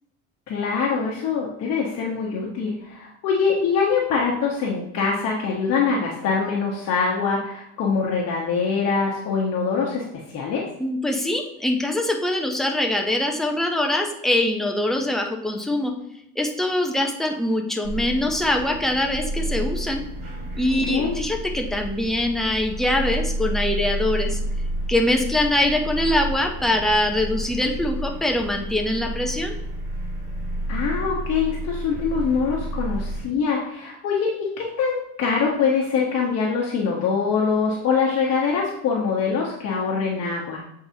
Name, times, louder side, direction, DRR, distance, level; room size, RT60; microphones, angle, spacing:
voice 1, 0.5-10.0 10.3-10.6 20.9-21.2 30.7-40.6, left 5 dB, 45° left, -3 dB, 1.1 m, -24 dB
voice 2, 10.8-15.9 16.4-20.0 20.5-24.4 24.9-29.5, left 1 dB, ahead, 2 dB, 0.6 m, -23 dB
sound 1, 17.8-33.3, right 1 dB, 75° right, 2.3 m, -30 dB
7.7 x 4.7 x 2.8 m, 0.81 s
cardioid pair, 130°, 36 cm